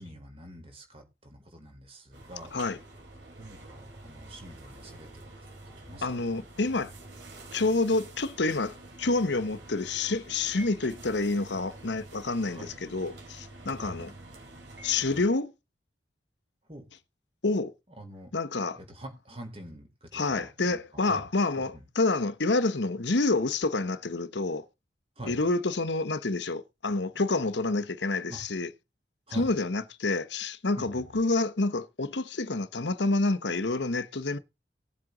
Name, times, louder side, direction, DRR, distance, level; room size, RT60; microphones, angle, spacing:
voice 1, 0.0-2.5 3.4-5.3 5.6-6.1 12.4-12.7 13.8-14.0 16.7-16.8 18.0-18.3 18.8-21.3 21.7-21.8 25.2-25.4 28.3-28.4 29.3-29.5 30.8-31.2, right 1 dB, 30° right, 4.4 m, -45 dB
sound 1, 2.1-15.3, right 2 dB, 75° right, 5.9 m, -47 dB
voice 2, 6.0-6.9 7.5-14.1 14.8-15.5 17.4-17.7 18.3-18.8 20.1-24.6 25.2-28.7 29.3-34.4, left 3 dB, 80° left, 1.1 m, -28 dB
19.0 x 7.9 x 4.0 m
head